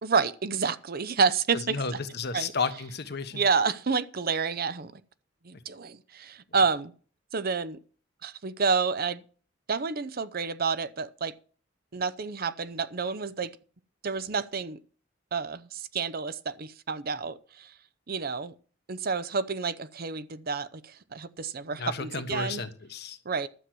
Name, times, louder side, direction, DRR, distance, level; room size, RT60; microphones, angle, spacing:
voice 1, 0.0-2.0 2.3-2.5 3.3-5.0 5.4-6.9 7.3-7.8 8.2-9.2 9.7-11.3 11.9-13.5 14.0-14.8 15.3-17.7 18.1-18.5 18.9-22.6 23.2-23.5, right 5 dB, 50° right, 0.7 m, -29 dB
voice 2, 1.7-3.4 21.7-23.2, left 4 dB, 60° left, 1.3 m, -32 dB
12.5 x 7.7 x 6.2 m
head